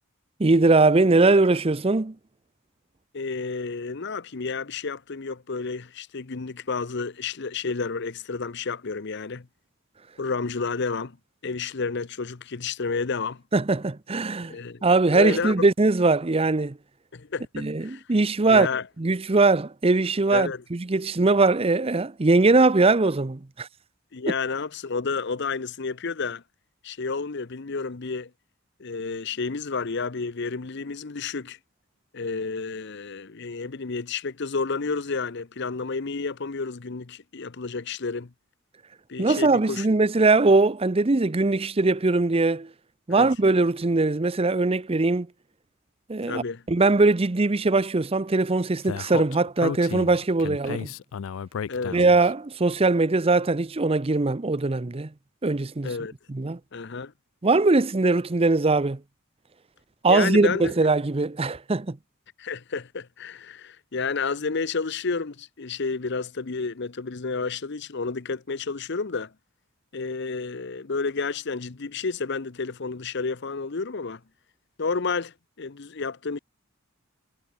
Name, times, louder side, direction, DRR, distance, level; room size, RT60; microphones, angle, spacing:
voice 1, 0.4-2.1 13.5-16.8 17.5-18.7 19.0-23.7 39.2-42.7 43.1-45.3 46.1-50.9 51.9-55.1 55.4-55.9 56.3-56.6 57.4-59.0 60.0-62.0, right 3 dB, 30° right, 0.6 m, -21 dB
voice 2, 3.1-9.5 10.2-11.2 11.4-13.4 14.5-14.8 15.1-15.5 17.1-18.0 18.5-18.8 20.3-20.6 24.1-26.4 26.8-28.3 28.8-31.6 32.1-38.3 39.1-39.8 43.2-43.3 46.3-46.6 51.7-52.0 55.8-56.1 56.7-57.1 60.1-60.7 62.4-69.3 69.9-74.2 74.8-76.4, left 4 dB, 55° left, 0.8 m, -30 dB
Speech, 48.9-52.3, left 7 dB, 75° left, 0.4 m, -33 dB
head